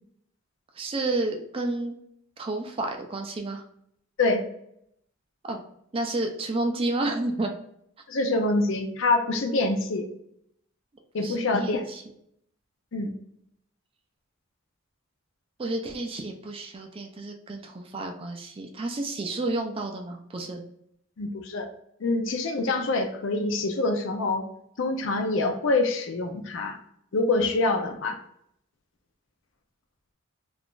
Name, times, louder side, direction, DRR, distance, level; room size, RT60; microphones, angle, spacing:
voice 1, 0.8-2.0 2.4-3.6 5.4-5.6 5.9-7.5 11.2-12.0 15.6-20.6, right 2 dB, 25° right, 3 dB, 0.4 m, -30 dB
voice 2, 8.1-10.1 11.1-11.8 12.9-13.1 21.2-21.7 22.0-24.5 24.8-26.8 27.1-28.1, left 2 dB, 60° left, 5 dB, 0.5 m, -25 dB
2.4 x 2.4 x 3.6 m, 0.73 s
head